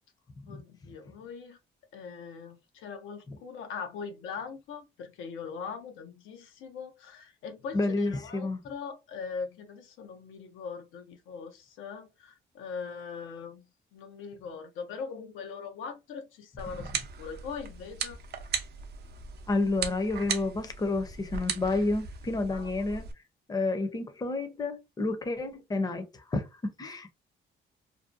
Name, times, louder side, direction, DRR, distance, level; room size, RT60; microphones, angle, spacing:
voice 1, 0.5-1.6 1.9-13.7 13.9-18.2 22.5-23.0, left 5 dB, 90° left, 0.6 m, -41 dB
voice 2, 7.7-8.6 19.5-23.1 23.5-27.1, left 2 dB, 20° left, 0.5 m, -30 dB
sound 1, 16.6-23.1, right 6 dB, 55° right, 0.5 m, -37 dB
2.6 x 2.1 x 2.4 m
cardioid pair, 90°, 20 cm